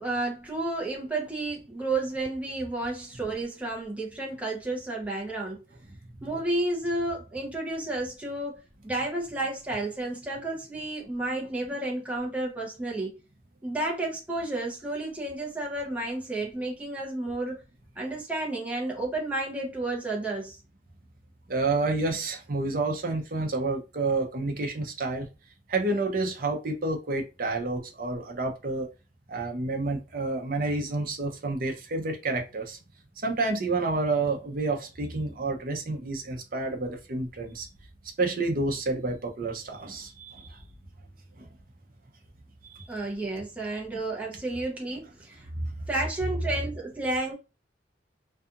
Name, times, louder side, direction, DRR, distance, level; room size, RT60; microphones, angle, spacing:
voice 1, 0.0-5.6 6.2-13.2 13.6-17.6 18.0-20.6 42.9-45.5 45.9-47.3, right 2 dB, 10° right, 0.7 m, -31 dB
voice 2, 21.5-25.3 25.7-28.9 29.3-32.8 33.2-37.7 38.2-40.6 41.4-41.5 42.7-42.8 45.5-45.6, right 3 dB, 50° right, 0.6 m, -29 dB
2.7 x 2.4 x 2.4 m
head